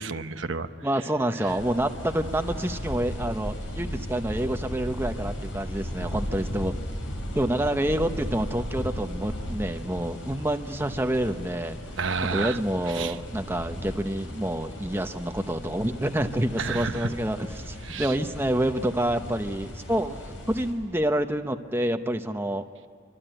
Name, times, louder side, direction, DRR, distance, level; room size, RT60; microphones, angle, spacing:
voice 1, 0.0-0.7 12.0-12.6 12.9-13.1 16.6-17.1 17.8-18.1, right 5 dB, 75° right, 8 dB, 1.0 m, -30 dB
voice 2, 0.8-6.7 7.3-11.8 12.3-22.6, right 1 dB, 10° right, 6 dB, 1.0 m, -28 dB
sound 1, 1.5-20.7, equal, 80° left, 5.9 m, -36 dB
25.5 x 25.5 x 9.1 m, 2.2 s
head